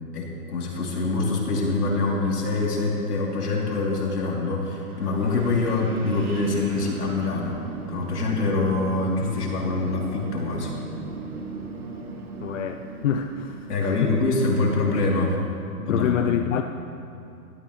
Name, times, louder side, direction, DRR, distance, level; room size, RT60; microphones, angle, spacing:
voice 1, 0.1-7.6 7.9-10.8 13.7-15.4 15.9-16.5, left 3 dB, 80° left, -3 dB, 3.5 m, -25 dB
Wind, 4.9-15.2, right 3 dB, 70° right, 1.9 m, -40 dB
sound 1, 5.3-12.5, right 5 dB, 45° right, 3.3 m, -40 dB
voice 2, 12.4-14.1 14.9-15.0 15.8-16.6, left 9 dB, 55° left, 7 dB, 0.6 m, -26 dB
17.0 x 13.5 x 3.3 m, 2.7 s
hypercardioid pair, 145°, 46 cm